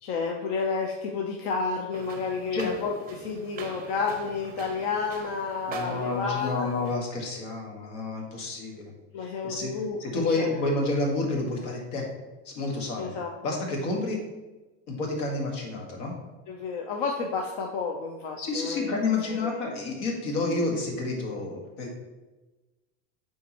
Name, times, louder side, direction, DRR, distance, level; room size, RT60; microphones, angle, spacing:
voice 1, 0.0-6.7 9.1-10.6 13.0-13.3 16.5-18.9 19.4-19.6, left 4 dB, 65° left, 1 dB, 0.7 m, -31 dB
sound 1, 1.9-7.0, right 5 dB, 25° right, 0.5 m, -44 dB
voice 2, 5.7-8.9 9.2-12.1 12.4-13.1 13.4-14.2 14.9-16.1 18.4-21.9, left 3 dB, 85° left, 0 dB, 1.7 m, -30 dB
9.3 x 3.7 x 3.0 m, 1.2 s
cardioid pair, 155°, 36 cm